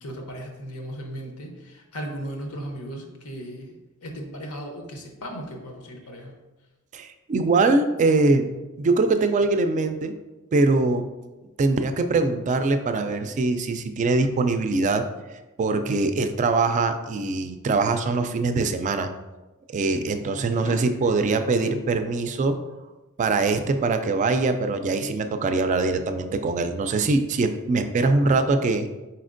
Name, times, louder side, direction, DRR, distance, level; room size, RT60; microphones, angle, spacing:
voice 1, 0.0-3.7 4.0-6.3 20.2-21.3, equal, 90° left, 2 dB, 0.8 m, -37 dB
voice 2, 6.9-8.5 8.8-10.1 10.5-11.1 11.6-15.0 15.6-19.1 19.7-22.6 23.2-28.9, right 3 dB, 35° right, 8 dB, 0.3 m, -22 dB
4.3 x 4.2 x 2.5 m, 1.1 s
head